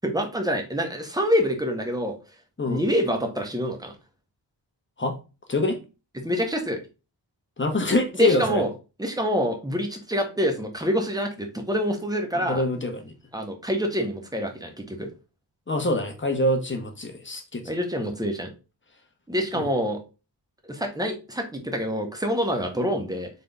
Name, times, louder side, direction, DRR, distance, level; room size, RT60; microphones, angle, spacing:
voice 1, 0.0-2.2 2.6-3.9 6.2-6.8 8.2-8.7 9.0-12.6 13.3-15.1 17.6-18.5 19.3-20.0 20.6-23.3, equal, 10° right, 1.1 m, -26 dB
voice 2, 7.6-8.6 12.3-13.1 15.7-17.7 19.5-19.7, left 2 dB, 25° left, 1.0 m, -25 dB
4.0 x 3.5 x 3.4 m
wide cardioid pair, 75°, 44 cm